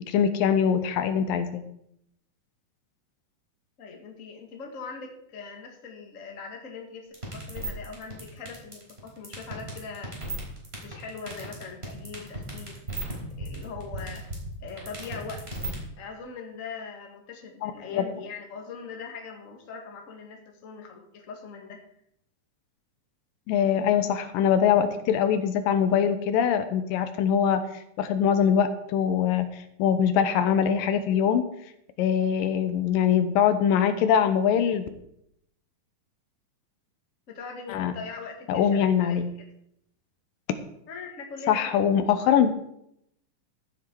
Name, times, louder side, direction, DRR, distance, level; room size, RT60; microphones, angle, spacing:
voice 1, 0.1-1.6 17.6-18.0 23.5-27.6 28.0-31.4 32.0-34.9 37.7-37.9 38.5-39.3 41.5-42.5, left 8 dB, 80° left, 10 dB, 2.5 m, -23 dB
voice 2, 3.8-10.1 10.8-12.8 13.4-15.6 16.0-21.8 37.3-39.2 40.9-41.7, left 5 dB, 30° left, 2 dB, 1.5 m, -41 dB
sound 1, 7.1-15.8, right 2 dB, 15° right, 3.9 m, -35 dB
14.5 x 9.3 x 4.6 m, 0.75 s
omnidirectional pair, 4.0 m